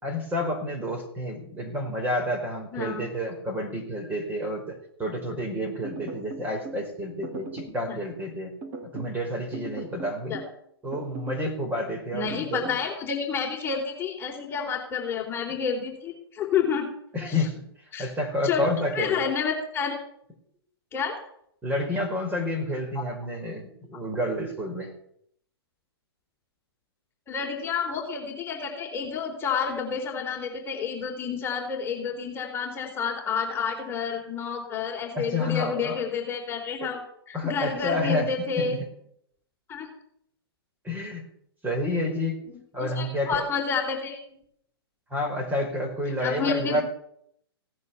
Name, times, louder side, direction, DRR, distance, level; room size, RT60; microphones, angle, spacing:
voice 1, 0.0-8.6 8.8-10.4 10.8-12.7 17.1-17.7 18.0-19.2 21.6-24.9 35.1-36.0 36.8-36.9 37.3-38.3 38.6-38.9 40.8-41.2 41.6-42.4 42.7-43.5 45.1-46.8, left 1 dB, 15° right, 4 dB, 4.5 m, -29 dB
voice 2, 2.7-3.0 7.9-8.0 10.3-10.4 12.1-16.9 17.3-17.4 17.9-18.1 18.4-18.6 18.9-20.0 20.9-21.1 27.3-38.8 39.7-39.9 42.5-44.2 46.2-46.8, left 6 dB, 15° left, 0 dB, 3.8 m, -29 dB
sound 1, 5.8-6.8 7.2-7.8 8.6-9.2 9.5-10.6 10.9-11.5 12.3-12.8, right 3 dB, 30° right, 3.0 m, -39 dB
17.0 x 9.7 x 7.0 m, 0.70 s
hypercardioid pair, 130°, 13 cm